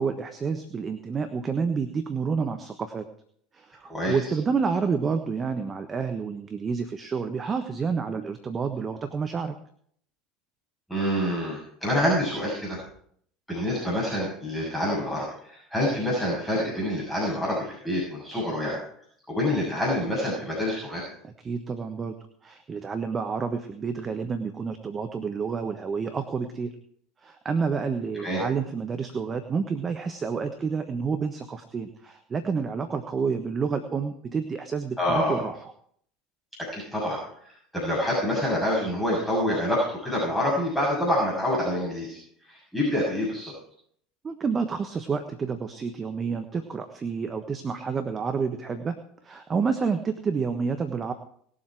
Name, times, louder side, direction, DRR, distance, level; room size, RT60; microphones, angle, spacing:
voice 1, 0.0-3.1 3.5-9.5 21.2-22.2 22.4-26.7 27.2-35.5 44.2-51.1, right 5 dB, 30° right, 7 dB, 1.3 m, -29 dB
voice 2, 3.8-4.2 10.9-12.8 13.5-18.8 19.3-21.0 28.1-28.4 35.0-35.4 36.6-43.5, left 1 dB, 5° left, -5 dB, 6.8 m, -27 dB
19.5 x 7.7 x 4.8 m, 0.63 s
hypercardioid pair, 70°, 0 cm